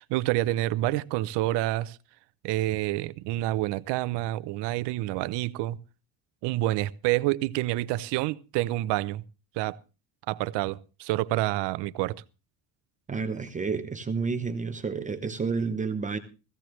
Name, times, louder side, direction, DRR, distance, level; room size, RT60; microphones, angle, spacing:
voice 1, 0.0-2.0 2.4-5.8 6.4-9.2 9.5-9.8 10.3-12.2, right 16 dB, 70° right, 0.7 m, -28 dB
voice 2, 13.1-16.2, right 5 dB, 15° right, 0.7 m, -30 dB
17.0 x 15.5 x 3.1 m
cardioid pair, 165°, 43 cm